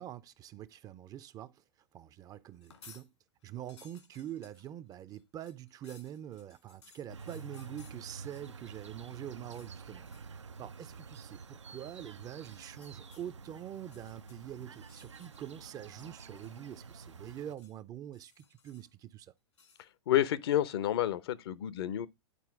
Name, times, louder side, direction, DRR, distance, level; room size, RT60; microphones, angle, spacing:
voice 1, 0.0-1.6 1.9-3.1 3.4-19.3, right 11 dB, 25° right, 0.5 m, -45 dB
sound 1, 2.5-3.1 3.4-8.8 9.1-9.7 10.0-10.4 10.7-11.0 12.4-13.3 13.8-15.5 15.8-16.7 17.0-17.8 18.1-19.0 19.5-19.9, left 6 dB, 80° left, 2.2 m, -61 dB
sound 2, 7.1-17.6, right 5 dB, 85° right, 0.5 m, -49 dB
voice 2, 20.1-22.1, left 12 dB, 60° left, 0.7 m, -29 dB
10.0 x 4.4 x 3.5 m
figure-of-eight pair, 105°, 15 cm